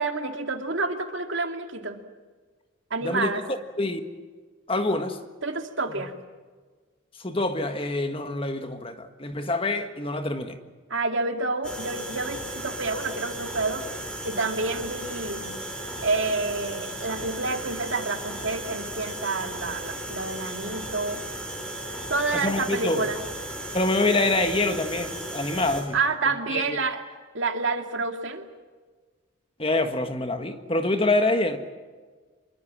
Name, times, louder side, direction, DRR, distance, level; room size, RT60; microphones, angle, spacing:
voice 1, 0.0-2.0 2.9-3.4 5.4-6.1 10.9-13.9 14.2-15.5 16.0-21.2 22.1-23.2 25.9-27.0 27.3-28.4, right 3 dB, 60° right, 2.4 m, -28 dB
voice 2, 4.7-5.2 7.2-10.6 22.3-23.1 23.7-26.0 26.5-26.8 29.6-31.6, left 2 dB, 25° left, 1.6 m, -26 dB
sound 1, 11.6-25.8, right 1 dB, 5° left, 5.0 m, -35 dB
26.5 x 23.0 x 7.6 m
head